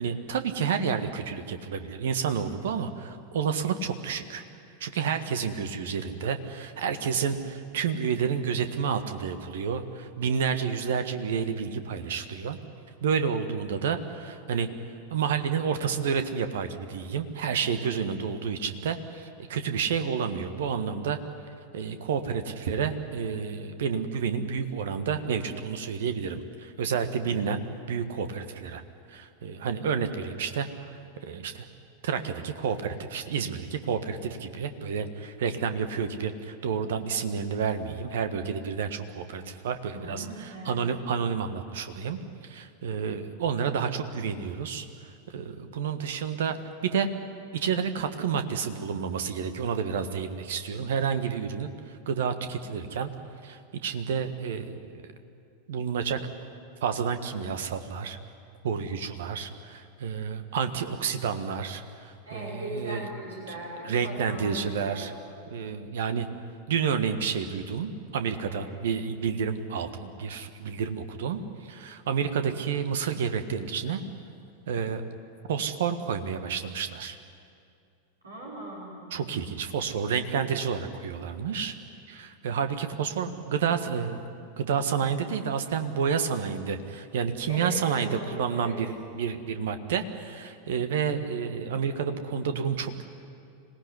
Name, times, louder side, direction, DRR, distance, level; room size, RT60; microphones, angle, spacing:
voice 1, 0.0-4.4 4.8-12.6 13.0-14.7 15.1-21.2 21.7-27.6 27.9-28.8 29.1-31.7 32.0-44.8 45.3-47.1 47.5-53.1 53.4-54.6 54.9-55.1 55.7-56.2 56.8-58.2 58.6-63.1 63.9-65.1 65.5-66.3 66.7-74.0 74.7-75.0 75.5-77.2 79.1-81.7 82.1-84.2 84.6-93.0, right 6 dB, 60° right, 9 dB, 1.6 m, -30 dB
voice 2, 39.9-40.8 62.3-65.1 68.4-68.7 78.2-79.0 87.5-88.8, right 1 dB, 75° right, -4 dB, 5.7 m, -39 dB
25.5 x 18.5 x 9.9 m, 2.5 s
figure-of-eight pair, 90°, 0 cm